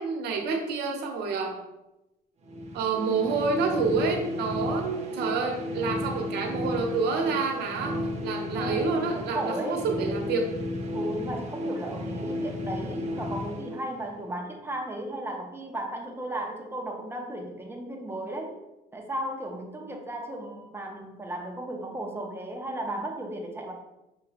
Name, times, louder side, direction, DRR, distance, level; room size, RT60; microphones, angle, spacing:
voice 1, 0.0-1.5 2.7-8.0 8.2-10.4, right 4 dB, 75° right, 2 dB, 0.9 m, -28 dB
sound 1, 2.4-14.4, left 1 dB, 40° right, 0.8 m, -33 dB
voice 2, 8.5-9.9 10.9-18.6 18.9-23.7, right 1 dB, 15° right, 2 dB, 0.7 m, -35 dB
6.0 x 2.3 x 3.1 m, 0.95 s
cardioid pair, 110°, 17 cm